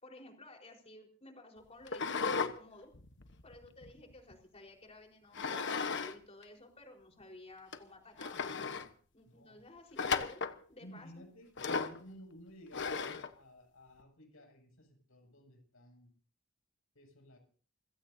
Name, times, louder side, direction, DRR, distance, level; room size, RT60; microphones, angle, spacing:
voice 1, 0.0-2.9 3.4-8.4 9.1-11.2, left 2 dB, 30° left, 2 dB, 4.5 m, -54 dB
sound 1, 1.9-2.5 2.9-4.3 5.3-6.1 6.4-6.5 7.2-7.3 7.7-7.8 8.2-8.9 10.0-10.6 11.6-12.0 12.7-13.3, left 5 dB, 60° left, 1.2 m, -35 dB
voice 2, 9.2-9.6 10.8-16.1 16.9-17.4, equal, 80° left, 3 dB, 7.3 m, -55 dB
29.0 x 16.0 x 2.8 m, 0.43 s
head